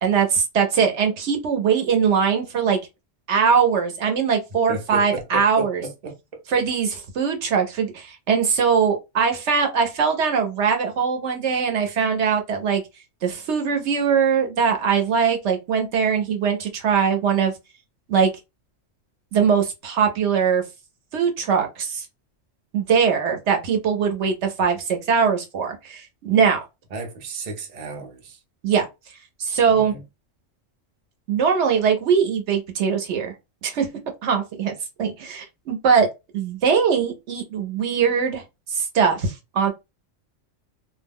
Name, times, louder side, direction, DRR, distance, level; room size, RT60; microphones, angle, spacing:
voice 1, 0.0-2.8 3.3-5.8 6.5-12.8 13.2-17.5 18.1-18.3 19.3-20.6 21.1-22.1 22.7-26.6 28.6-28.9 29.4-29.9 31.3-33.3 33.6-33.9 34.2-36.1 36.3-38.4 38.7-39.7, right 6 dB, 70° right, 0.9 m, -21 dB
voice 2, 4.7-6.4 26.9-28.4 29.7-30.0, right 3 dB, 40° right, 0.6 m, -33 dB
2.3 x 2.1 x 3.5 m
omnidirectional pair, 1.3 m